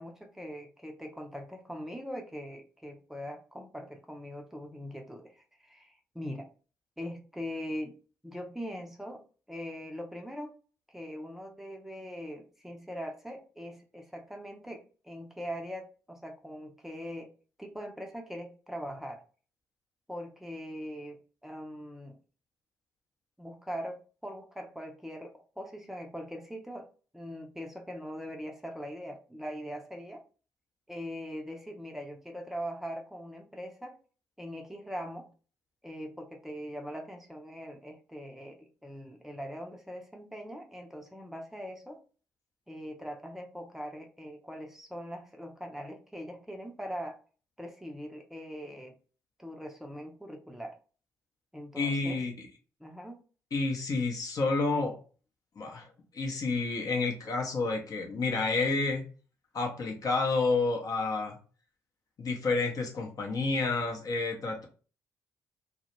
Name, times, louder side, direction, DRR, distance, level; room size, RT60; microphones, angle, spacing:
voice 1, 0.0-6.5 7.0-8.0 8.2-9.2 9.5-10.5 10.9-17.3 17.6-19.2 20.1-22.2 23.4-26.9 27.1-30.2 30.9-34.0 34.4-35.3 35.8-42.0 42.7-47.2 47.6-48.9 49.4-50.8 51.5-52.2 52.8-53.2, equal, 5° right, 1 dB, 0.6 m, -41 dB
voice 2, 51.8-52.3 53.5-55.0 55.6-55.9 56.1-59.0 59.5-61.4 62.2-64.7, left 3 dB, 45° left, 2 dB, 0.8 m, -29 dB
2.3 x 2.1 x 3.0 m, 0.37 s
hypercardioid pair, 45°, 9 cm